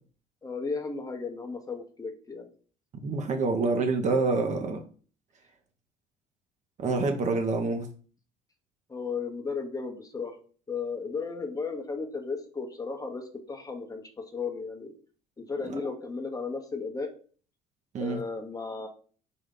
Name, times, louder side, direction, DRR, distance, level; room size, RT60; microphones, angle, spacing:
voice 1, 0.4-2.5 8.9-10.4 10.7-14.9 15.4-17.1 18.0-18.9, left 4 dB, 20° left, 3 dB, 0.9 m, -35 dB
voice 2, 3.0-4.8 6.8-7.9 17.9-18.2, right 3 dB, 40° right, 4 dB, 0.8 m, -27 dB
3.8 x 2.6 x 3.7 m, 0.41 s
hypercardioid pair, 55°, 19 cm